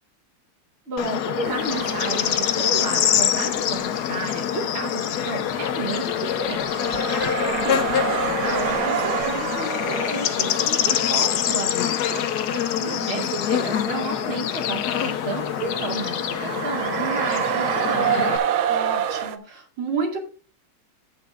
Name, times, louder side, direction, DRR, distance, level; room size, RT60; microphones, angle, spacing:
voice 1, 0.9-6.8 7.5-12.2 13.1-18.4, right 3 dB, 35° right, 1 dB, 1.1 m, -32 dB
Bird / Insect, 1.0-18.4, left 9 dB, 65° left, 1.0 m, -25 dB
sound 1, 1.4-3.0 3.3-19.4, right 9 dB, 75° right, 1.5 m, -29 dB
voice 2, 12.8-13.3 18.7-20.2, right 5 dB, 55° right, 1 dB, 2.9 m, -30 dB
17.5 x 6.0 x 2.4 m, 0.36 s
omnidirectional pair, 2.4 m